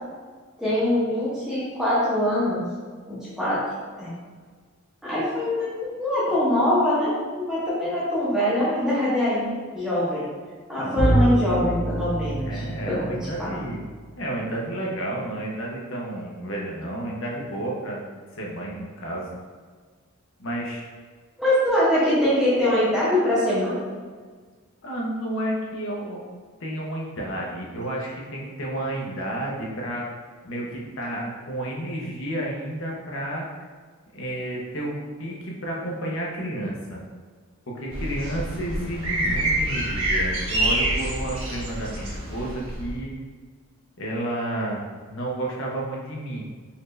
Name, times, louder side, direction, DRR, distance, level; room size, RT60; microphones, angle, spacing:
voice 1, 0.6-2.6 3.1-3.6 4.0-4.2 5.0-7.1 7.4-10.2 10.7-13.5 21.4-23.8, left 1 dB, ahead, -10 dB, 0.9 m, -23 dB
Bowed string instrument, 11.0-14.0, right 1 dB, 30° right, 0.7 m, -26 dB
voice 2, 12.5-13.8 14.2-18.0 18.3-19.3 20.4-20.8 24.8-26.2 26.6-30.0 30.4-33.5 34.1-37.0 37.7-43.1 44.0-46.4, right 1 dB, 60° left, -3 dB, 0.8 m, -31 dB
sound 1, 37.9-43.0, right 1 dB, 65° right, 1.2 m, -27 dB
4.2 x 2.6 x 3.1 m, 1.5 s
head